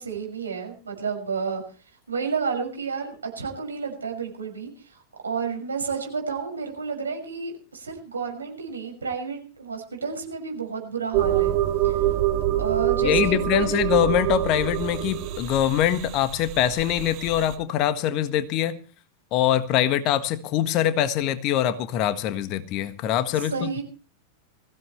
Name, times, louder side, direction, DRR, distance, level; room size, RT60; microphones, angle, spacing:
voice 1, 0.0-1.6 2.1-11.5 11.8-12.1 12.6-14.0 23.3-23.8, right 5 dB, 75° right, 3 dB, 6.3 m, -31 dB
sound 1, 11.1-17.5, right 13 dB, 40° right, 2.2 m, -25 dB
voice 2, 13.0-18.8 19.3-23.8, left 11 dB, 40° left, 11 dB, 1.5 m, -23 dB
21.5 x 16.0 x 3.2 m, 0.38 s
figure-of-eight pair, 90°, 0 cm